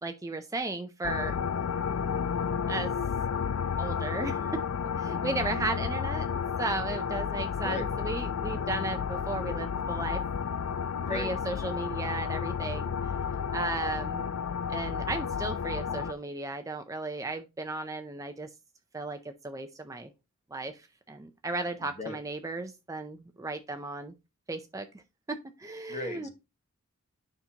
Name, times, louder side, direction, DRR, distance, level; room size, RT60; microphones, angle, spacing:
voice 1, 0.0-1.4 2.7-2.9 3.8-4.7 5.0-6.3 6.6-10.2 11.1-14.3 14.7-18.5 18.9-20.1 20.5-20.8 21.1-24.1 24.5-24.9 25.3-26.3, right 2 dB, 15° right, 7 dB, 0.5 m, -35 dB
sound 1, 1.0-16.1, left 7 dB, 75° left, 0.4 m, -32 dB
voice 2, 11.0-11.3 21.8-22.2 25.9-26.3, left 3 dB, 30° left, 7 dB, 1.2 m, -36 dB
9.3 x 5.8 x 2.8 m, 0.26 s
head